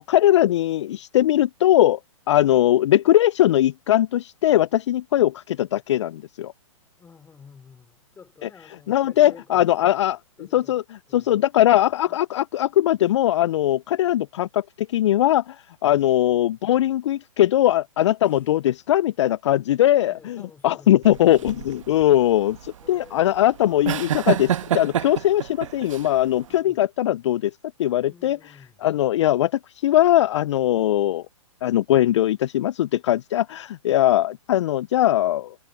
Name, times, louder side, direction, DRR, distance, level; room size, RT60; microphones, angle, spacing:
voice 1, 0.0-2.0 2.3-6.5 8.4-8.5 8.9-10.2 10.5-10.8 11.1-27.5 27.8-28.4 28.8-29.5 29.8-31.2 31.6-35.5, left 13 dB, 55° left, 0.4 m, -20 dB
voice 2, 7.0-9.9 10.4-10.8 11.1-11.4 12.1-12.2 18.2-18.5 20.0-21.0 21.4-22.1 22.8-23.5 26.5-26.9 27.9-28.9, left 6 dB, 10° left, 3.6 m, -49 dB
sound 1, 21.0-26.6, right 10 dB, 60° right, 1.4 m, -28 dB
hypercardioid pair, 135°, 18 cm